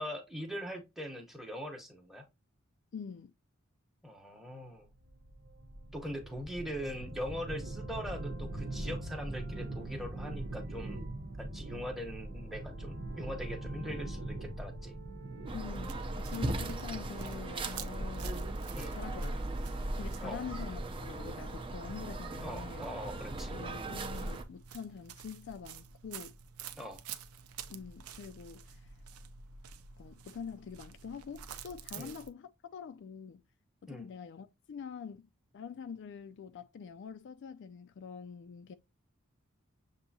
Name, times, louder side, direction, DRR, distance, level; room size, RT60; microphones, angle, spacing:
voice 1, 0.0-2.2 4.0-4.9 5.9-11.0 11.4-15.0 18.7-19.0 20.2-20.5 22.4-23.6 26.8-27.0 31.9-32.2 33.9-34.1, equal, ahead, 0.9 m, -41 dB
voice 2, 2.9-3.3 15.5-18.4 18.9-19.4 20.0-22.9 23.5-26.3 27.7-28.9 30.0-33.4 33.8-38.8, left 6 dB, 55° left, 0.3 m, -45 dB
sound 1, 5.0-17.1, right 1 dB, 55° right, 0.9 m, -42 dB
sound 2, 15.5-24.4, right 2 dB, 25° right, 0.5 m, -38 dB
sound 3, 15.9-32.3, right 7 dB, 80° right, 0.5 m, -50 dB
6.7 x 2.7 x 2.7 m
head